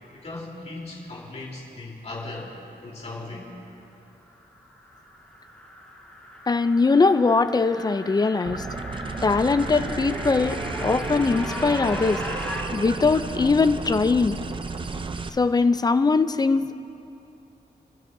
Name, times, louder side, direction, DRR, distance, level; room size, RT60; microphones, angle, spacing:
voice 1, 0.1-2.5 2.8-3.5, left 2 dB, 40° left, -4 dB, 3.5 m, -37 dB
sound 1, 4.3-12.6, left 1 dB, 5° left, 1.9 m, -38 dB
voice 2, 6.5-8.7 9.2-12.2 12.7-14.4 15.3-16.7, left 4 dB, 25° left, 11 dB, 0.4 m, -21 dB
sound 2, 8.4-15.3, right 4 dB, 30° right, 0.5 m, -32 dB
29.5 x 12.5 x 2.7 m, 2.8 s
wide cardioid pair, 155°, 17 cm